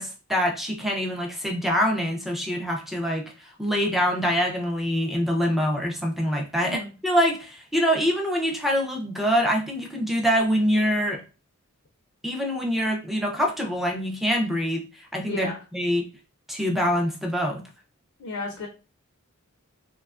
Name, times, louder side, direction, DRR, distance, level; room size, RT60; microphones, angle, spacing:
voice 1, 0.0-11.2 12.2-15.5 15.7-16.1 16.5-17.6, equal, ahead, -1 dB, 0.4 m, -25 dB
voice 2, 6.6-6.9 15.3-15.6 18.2-18.7, left 2 dB, 70° left, 1 dB, 0.5 m, -32 dB
2.8 x 2.2 x 2.3 m, 0.33 s
head